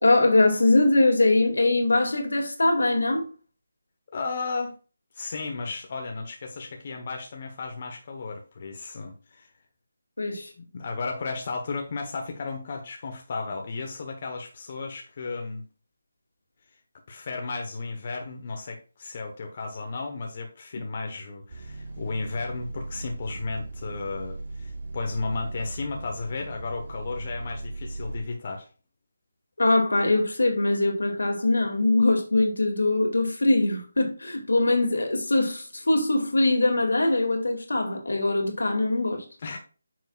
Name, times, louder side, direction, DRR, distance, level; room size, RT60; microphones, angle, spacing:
voice 1, 0.0-3.2 10.2-10.5 29.6-39.2, left 2 dB, 80° left, 2.4 m, -22 dB
voice 2, 4.1-4.8 5.1-9.5 10.6-15.6 17.1-28.7 39.4-39.6, left 3 dB, 40° left, 1.1 m, -34 dB
sound 1, 21.5-28.2, right 2 dB, 55° right, 4.4 m, -38 dB
9.1 x 6.2 x 2.4 m
figure-of-eight pair, 160°, 0 cm